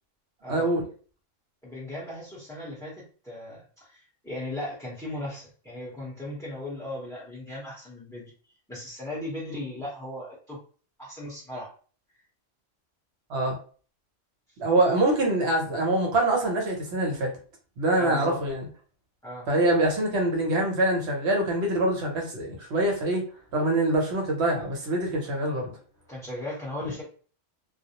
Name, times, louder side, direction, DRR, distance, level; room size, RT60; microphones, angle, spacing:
voice 1, 0.5-0.8 13.3-13.6 14.6-17.3 17.8-18.6 19.5-23.2 23.5-25.7, right 2 dB, 60° right, 1 dB, 1.0 m, -24 dB
voice 2, 1.6-8.3 8.7-10.6 11.0-11.7 17.9-18.4 19.2-19.5 26.1-27.0, left 1 dB, 5° left, -7 dB, 0.7 m, -37 dB
2.3 x 2.0 x 2.8 m, 0.40 s
omnidirectional pair, 1.3 m